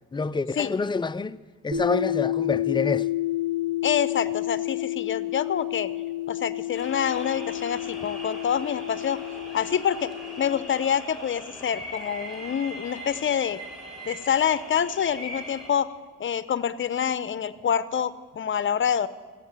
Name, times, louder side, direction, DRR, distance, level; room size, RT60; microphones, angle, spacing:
voice 1, 0.1-1.4 1.6-3.1, left 4 dB, 15° left, 0.4 m, -27 dB
sound 1, 1.7-10.5, left 13 dB, 40° right, 3.9 m, -30 dB
voice 2, 3.8-5.9 6.3-9.2 9.5-10.1 10.4-13.6 14.0-15.9 16.2-19.1, left 8 dB, 40° left, 0.7 m, -26 dB
sound 2, 6.7-15.7, equal, ahead, 4.8 m, -41 dB
14.5 x 8.2 x 9.3 m
cardioid pair, 90°, 30 cm